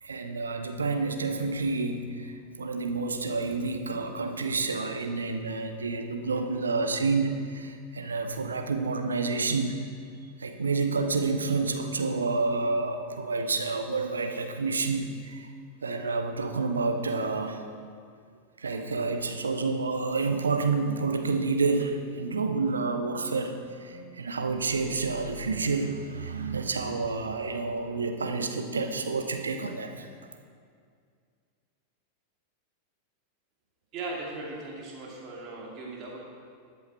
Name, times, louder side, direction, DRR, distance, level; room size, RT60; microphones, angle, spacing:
voice 1, 0.0-9.8 10.4-15.5 15.8-17.6 18.6-30.1, right 4 dB, 75° right, 6 dB, 0.9 m, -29 dB
voice 2, 33.9-36.2, right 2 dB, 35° right, -2 dB, 2.6 m, -38 dB
13.0 x 8.1 x 4.3 m, 2.2 s
figure-of-eight pair, 90°, 0 cm